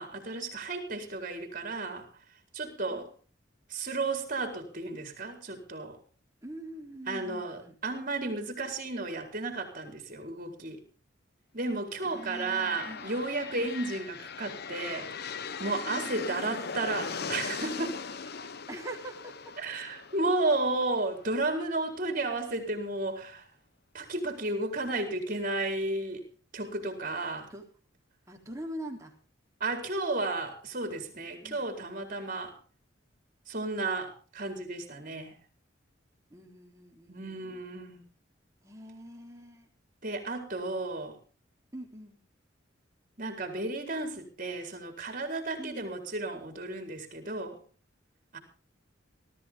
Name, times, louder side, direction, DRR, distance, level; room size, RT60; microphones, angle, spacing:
voice 1, 0.0-2.1 2.5-3.1 3.7-6.0 7.1-10.8 11.5-15.1 15.6-18.0 19.6-23.5 23.9-26.3 26.5-27.5 29.6-32.5 33.5-35.4 37.1-38.0 40.0-41.2 43.2-47.6 48.3-48.4, right 2 dB, 45° right, 5 dB, 4.5 m, -33 dB
voice 2, 6.4-7.8 12.0-13.2 13.5-13.8 18.7-19.5 27.5-27.7 28.3-29.2 31.4-31.7 36.3-37.6 38.6-39.7 41.7-42.2 45.6-45.9, right 1 dB, 15° right, 1 dB, 3.6 m, -44 dB
sound 1, 12.0-21.9, left 5 dB, 55° left, 0.9 m, -40 dB
19.0 x 14.0 x 3.8 m, 0.37 s
head